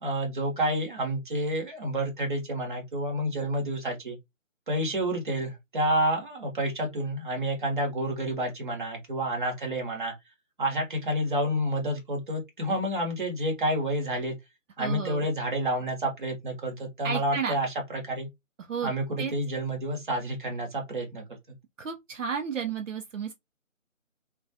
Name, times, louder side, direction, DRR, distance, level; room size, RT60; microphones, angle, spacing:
voice 1, 0.0-4.2 4.7-10.1 10.6-14.4 14.8-18.3 18.8-21.2, right 1 dB, 40° right, 0.8 m, -29 dB
voice 2, 14.8-15.3 17.0-17.6 18.6-18.9 19.2-19.3 21.8-23.3, right 6 dB, 70° right, 0.5 m, -32 dB
2.3 x 2.2 x 2.6 m
figure-of-eight pair, 170°, 40 cm